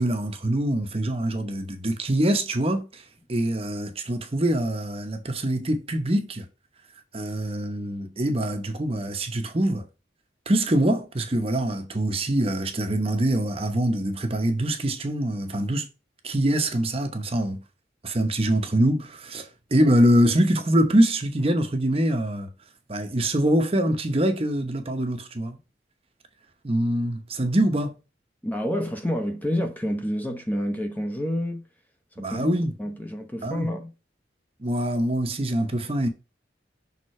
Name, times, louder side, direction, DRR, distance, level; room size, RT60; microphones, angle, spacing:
voice 1, 0.0-3.0 3.3-6.5 7.1-9.8 10.5-15.9 16.2-17.6 18.0-22.5 22.9-25.6 26.6-27.9 32.2-32.8 33.4-33.7 34.6-36.1, right 1 dB, 30° right, 0.9 m, -24 dB
voice 2, 28.4-31.6 32.2-32.5 32.8-33.9, equal, 10° left, 0.9 m, -28 dB
6.5 x 3.7 x 4.2 m
head